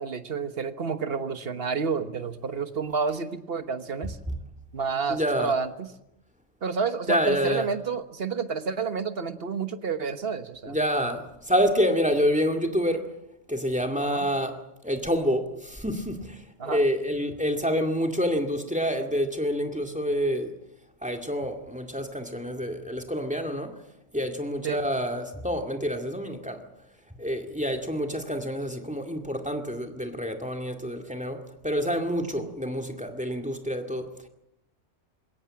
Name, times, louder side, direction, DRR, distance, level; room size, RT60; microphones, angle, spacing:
voice 1, 0.0-4.2 4.7-5.9 6.6-10.8 14.0-14.3 16.6-16.8 24.6-24.8 32.4-32.5, right 5 dB, 50° right, 1.4 m, -30 dB
voice 2, 5.1-5.5 7.1-7.7 10.7-13.0 13.5-20.5 21.0-23.8 24.1-26.6 27.2-34.3, equal, 5° right, 2.1 m, -27 dB
21.5 x 18.0 x 8.8 m
omnidirectional pair, 1.3 m